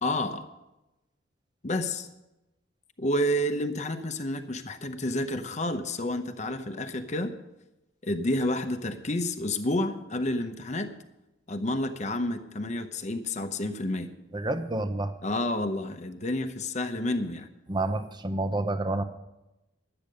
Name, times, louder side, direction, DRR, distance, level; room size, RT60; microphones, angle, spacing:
voice 1, 0.0-0.4 1.6-2.1 3.0-7.3 8.0-10.9 11.5-14.1 15.2-17.5, left 1 dB, 35° left, 8 dB, 0.8 m, -30 dB
voice 2, 14.3-15.1 17.7-19.0, right 2 dB, 20° right, 10 dB, 0.7 m, -29 dB
12.5 x 8.8 x 6.6 m, 0.97 s
head